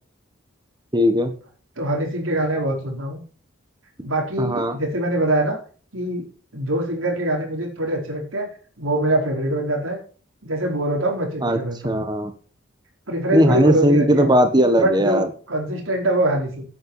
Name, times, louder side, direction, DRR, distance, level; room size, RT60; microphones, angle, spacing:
voice 1, 0.9-1.3 4.4-4.7 11.4-11.6 11.8-12.3 13.3-15.3, equal, 20° right, 7 dB, 1.5 m, -18 dB
voice 2, 1.8-3.2 4.0-5.6 5.9-6.3 6.5-8.5 8.8-10.0 10.4-12.0 13.1-14.3 14.7-16.6, right 1 dB, 80° right, 1 dB, 4.8 m, -23 dB
9.9 x 9.2 x 7.3 m, 0.40 s
head